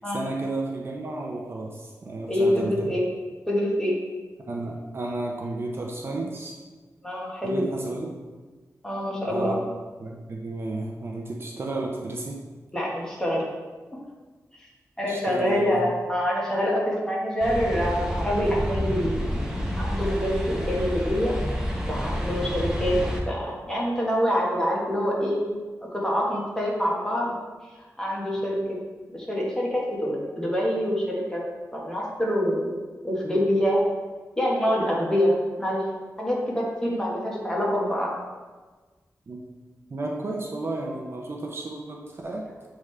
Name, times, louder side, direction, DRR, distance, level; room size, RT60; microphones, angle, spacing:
voice 1, 0.1-2.9 4.5-6.5 7.4-8.1 9.2-9.6 10.0-12.4 15.1-15.8 39.3-39.4 39.9-42.4, right 2 dB, 45° right, -1 dB, 0.7 m, -32 dB
voice 2, 2.3-3.0 3.5-3.9 7.0-7.7 8.8-9.6 12.7-13.4 15.0-19.2 19.8-21.4 21.9-22.9 23.3-25.4 25.9-27.3 28.0-28.8 29.1-31.4 31.7-32.8 33.0-33.8 34.4-35.8 36.2-38.1, equal, 10° left, -4 dB, 1.3 m, -25 dB
sound 1, 17.4-23.2, equal, 10° right, 0.8 m, -29 dB
8.0 x 3.7 x 3.2 m, 1.3 s
wide cardioid pair, 140°, 6 cm